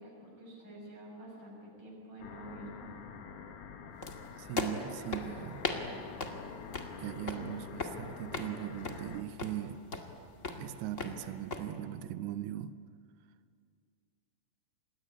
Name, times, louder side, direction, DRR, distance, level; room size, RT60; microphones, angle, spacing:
voice 1, 0.0-2.9, right 1 dB, 25° right, 7.3 m, -48 dB
sound 1, 2.2-9.2, left 6 dB, 60° left, 1.6 m, -47 dB
sound 2, 4.0-11.6, left 3 dB, 35° left, 1.3 m, -40 dB
voice 2, 4.4-5.7 7.0-9.8 10.6-12.7, right 12 dB, 80° right, 2.7 m, -39 dB
27.5 x 20.5 x 9.8 m
omnidirectional pair, 4.8 m